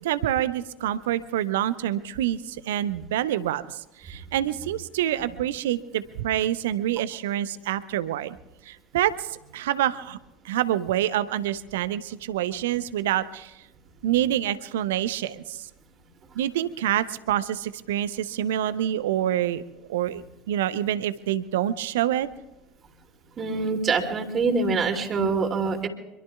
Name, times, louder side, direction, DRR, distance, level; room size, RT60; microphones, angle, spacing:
voice 1, 0.0-8.4 8.7-10.2 10.4-13.5 14.0-15.7 16.3-19.6 19.9-22.3, right 12 dB, 65° right, 15 dB, 0.7 m, -27 dB
voice 2, 23.4-25.9, right 4 dB, 30° right, 4 dB, 2.8 m, -25 dB
26.0 x 23.0 x 2.4 m, 0.99 s
figure-of-eight pair, 70°, 0 cm